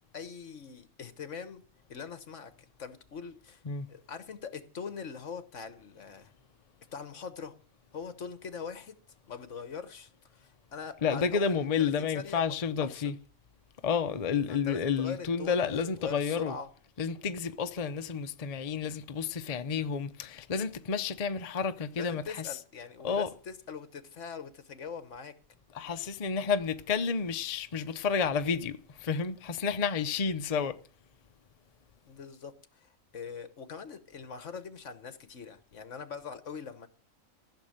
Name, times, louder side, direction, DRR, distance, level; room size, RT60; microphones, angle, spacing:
voice 1, 0.1-1.6 1.9-2.5 2.8-3.6 3.9-6.3 6.9-7.5 7.9-9.0 9.3-13.1 14.5-16.7 22.0-25.3 32.1-36.9, left 6 dB, 65° left, 1.5 m, -42 dB
voice 2, 11.0-13.1 13.8-16.6 17.0-22.5 23.0-23.3 25.7-30.8, left 6 dB, 40° left, 0.6 m, -30 dB
15.0 x 6.5 x 8.8 m
omnidirectional pair, 1.4 m